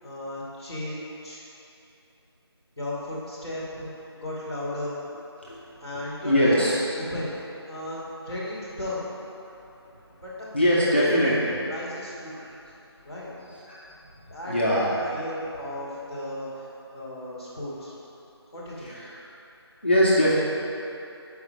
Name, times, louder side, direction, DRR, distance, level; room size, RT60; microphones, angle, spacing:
voice 1, 0.0-1.4 2.8-3.9 4.1-5.0 5.8-6.7 7.0-7.3 7.6-9.0 10.2-10.3 10.8-11.2 11.7-12.4 13.0-13.3 14.3-17.9 18.5-18.9, left 1 dB, 10° right, -14 dB, 0.9 m, -35 dB
voice 2, 6.2-6.7 10.5-11.6 12.4-12.5 13.5-13.8 14.4-15.1 18.8-19.2 19.8-20.3, equal, 25° left, -8 dB, 0.6 m, -22 dB
5.6 x 4.7 x 5.1 m, 2.9 s
figure-of-eight pair, 180°, 14 cm